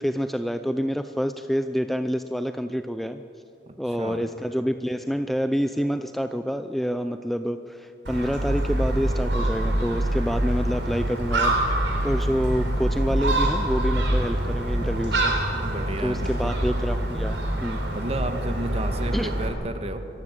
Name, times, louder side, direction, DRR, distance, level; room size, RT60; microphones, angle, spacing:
voice 1, 0.0-3.2 3.8-11.6 12.0-15.3 16.0-17.8 19.1-19.3, equal, ahead, 9 dB, 0.4 m, -27 dB
voice 2, 3.7-4.3 15.5-16.5 17.9-20.0, right 1 dB, 35° right, 8 dB, 1.5 m, -32 dB
Gull seagull, 8.1-19.5, right 1 dB, 90° right, 4.1 m, -25 dB
25.5 x 15.0 x 8.1 m, 2.8 s
head